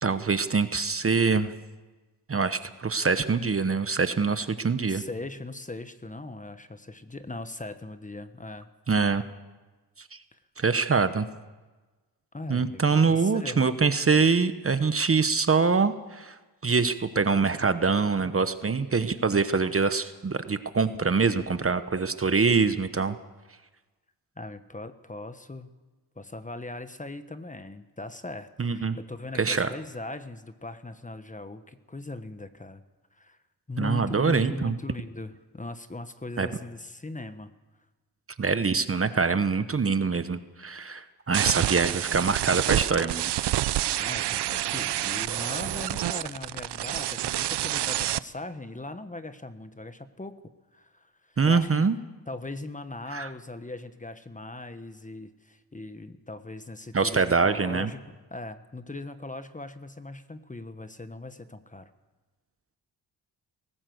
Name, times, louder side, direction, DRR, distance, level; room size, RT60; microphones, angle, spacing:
voice 1, 0.0-1.5 2.3-5.0 8.9-9.2 10.1-10.2 10.6-11.3 12.5-16.4 16.6-23.2 28.6-29.0 29.4-29.7 33.8-34.8 36.4-36.5 38.4-43.3 51.4-52.0 53.1-53.3 56.9-57.9, right 4 dB, 30° right, 11 dB, 1.0 m, -24 dB
voice 2, 4.9-8.7 10.3-10.4 12.3-13.6 24.4-25.8 26.1-32.8 33.2-33.4 33.7-37.5 44.0-50.4 50.7-51.9 52.3-61.9, left 2 dB, 20° left, 10 dB, 1.3 m, -39 dB
sound 1, 41.3-48.2, right 13 dB, 75° right, 0.6 m, -28 dB
19.5 x 18.0 x 7.9 m, 1.2 s
cardioid pair, 80°, 42 cm